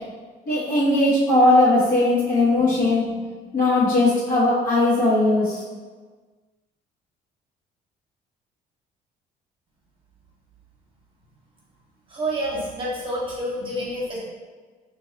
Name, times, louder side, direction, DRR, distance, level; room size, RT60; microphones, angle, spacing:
voice 1, 0.5-3.0 3.5-5.6, left 2 dB, 55° left, -8 dB, 1.0 m, -19 dB
voice 2, 12.1-14.2, equal, 30° right, -5 dB, 1.0 m, -28 dB
2.9 x 2.7 x 3.9 m, 1.4 s
cardioid pair, 110°, 17 cm